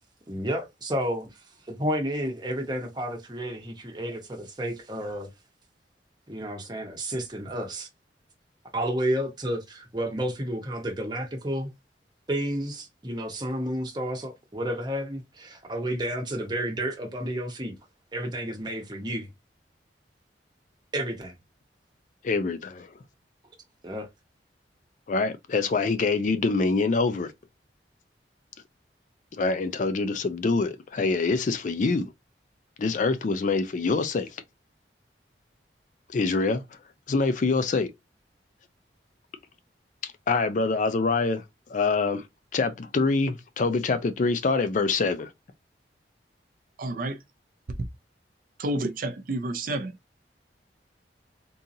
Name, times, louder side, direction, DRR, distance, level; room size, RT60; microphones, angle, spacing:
voice 1, 0.3-1.3 1.7-5.3 6.3-7.9 8.7-11.7 12.3-17.7 18.1-19.3 20.9-21.3 23.8-24.1, equal, 25° right, 1.0 m, -31 dB
voice 2, 22.2-22.9 25.1-27.3 29.4-32.1 32.8-34.3 36.1-36.6 37.1-37.9 40.3-41.4 41.7-42.2 42.5-45.3, left 3 dB, 45° left, 0.4 m, -25 dB
voice 3, 46.8-47.2 48.6-49.9, right 1 dB, 50° right, 0.5 m, -30 dB
3.8 x 2.7 x 2.6 m
head